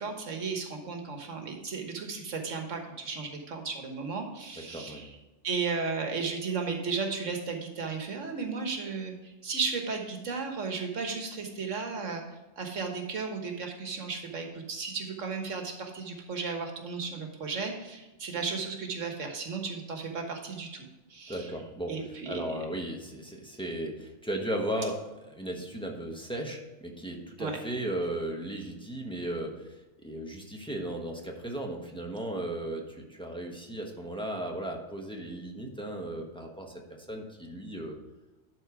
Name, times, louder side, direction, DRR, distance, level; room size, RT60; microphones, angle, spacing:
voice 1, 0.0-5.1 5.4-12.2 12.6-20.8 21.1-21.5 21.9-22.6 27.4-27.6, right 4 dB, 90° right, 3 dB, 1.6 m, -34 dB
voice 2, 4.6-5.0 21.3-21.9 22.2-25.0 25.3-38.0, right 1 dB, 5° left, 0 dB, 1.1 m, -36 dB
11.5 x 4.3 x 4.8 m, 1.1 s
omnidirectional pair, 1.3 m